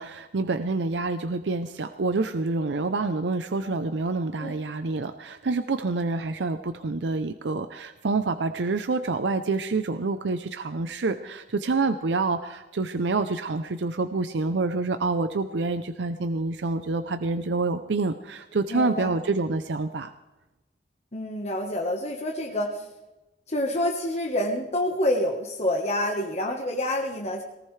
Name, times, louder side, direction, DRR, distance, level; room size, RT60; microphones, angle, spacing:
voice 1, 0.0-20.1, right 3 dB, 80° right, 9 dB, 0.6 m, -27 dB
voice 2, 18.7-19.1 21.1-22.9 23.5-27.4, left 1 dB, 40° left, 1 dB, 1.3 m, -27 dB
19.0 x 18.5 x 3.3 m, 1.1 s
head